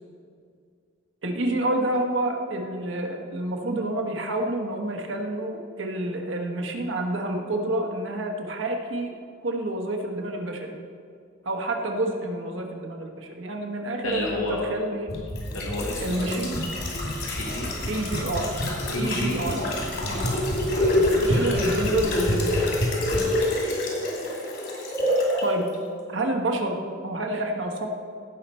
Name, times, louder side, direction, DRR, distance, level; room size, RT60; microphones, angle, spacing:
voice 1, 1.2-9.1 9.4-10.8 11.4-15.1 16.0-16.6 17.9-18.5 19.0-19.7 20.9-22.9 25.4-25.7 26.1-26.8 27.0-27.9, right 1 dB, 65° right, 3 dB, 1.2 m, -28 dB
voice 2, 14.0-14.6 15.5-16.5 17.2-17.7 18.9-20.3 23.1-23.3, left 1 dB, 80° left, -3 dB, 1.3 m, -31 dB
sound 1, 15.1-25.4 25.7-25.8, left 1 dB, 55° left, 2.6 m, -26 dB
16.5 x 5.8 x 4.3 m, 2.3 s
head